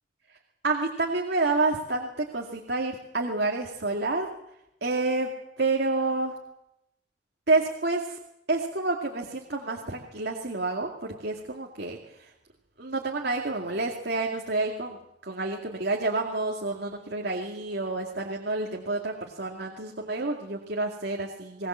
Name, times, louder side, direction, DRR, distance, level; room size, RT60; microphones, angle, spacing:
voice 1, 0.6-4.3 4.8-5.3 5.6-6.3 7.5-8.2 8.5-12.3 12.8-15.0 15.2-21.7, right 3 dB, 65° right, 0 dB, 2.3 m, -29 dB
21.5 x 19.5 x 7.5 m, 0.85 s
head